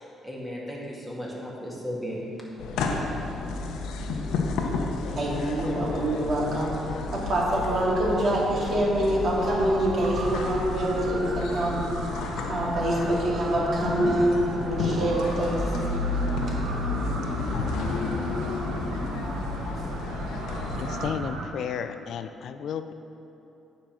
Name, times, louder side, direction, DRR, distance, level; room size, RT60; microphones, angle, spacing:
voice 1, 0.0-2.2, equal, 5° right, -5 dB, 2.1 m, -35 dB
sound 1, 2.6-21.1, left 3 dB, 85° left, 0.7 m, -31 dB
voice 2, 5.2-6.7 7.1-11.8 12.5-15.6 16.5-16.6, right 1 dB, 50° right, -4 dB, 2.1 m, -25 dB
sound 2, 9.8-21.5, right 4 dB, 85° right, 0.8 m, -37 dB
voice 3, 20.7-22.9, left 8 dB, 70° left, 10 dB, 0.3 m, -33 dB
9.5 x 5.2 x 6.0 m, 2.9 s
cardioid pair, 90°, 0 cm